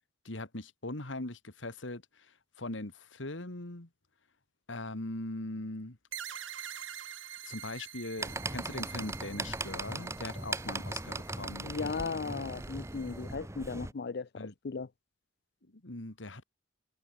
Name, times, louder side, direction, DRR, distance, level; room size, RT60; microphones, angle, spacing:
voice 1, 0.2-2.0 2.6-3.9 4.7-6.0 7.4-11.9 14.4-14.5 15.7-16.4, left 2 dB, 75° left, 2.3 m, -40 dB
sound 1, 6.1-13.3, right 9 dB, 90° right, 2.1 m, -47 dB
sound 2, 8.2-13.9, right 2 dB, 15° right, 1.4 m, -38 dB
voice 2, 11.6-14.9, left 4 dB, 55° left, 0.5 m, -37 dB
head